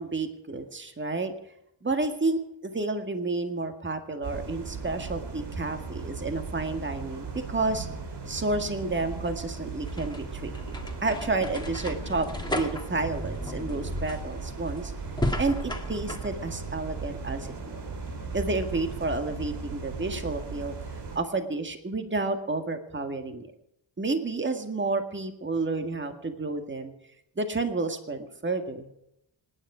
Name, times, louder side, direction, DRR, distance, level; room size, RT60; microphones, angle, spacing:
voice 1, 0.0-1.3 1.8-7.9 8.3-10.5 11.0-12.3 12.5-14.9 15.4-17.8 18.3-20.7 21.2-23.5 24.0-26.9 27.4-28.9, right 3 dB, 25° right, 6 dB, 1.8 m, -30 dB
sound 1, 4.2-21.2, right 4 dB, 65° right, 2.9 m, -37 dB
sound 2, 9.7-16.3, left 1 dB, 10° left, 2.1 m, -34 dB
27.0 x 9.8 x 5.0 m, 0.80 s
wide cardioid pair, 110°, 45 cm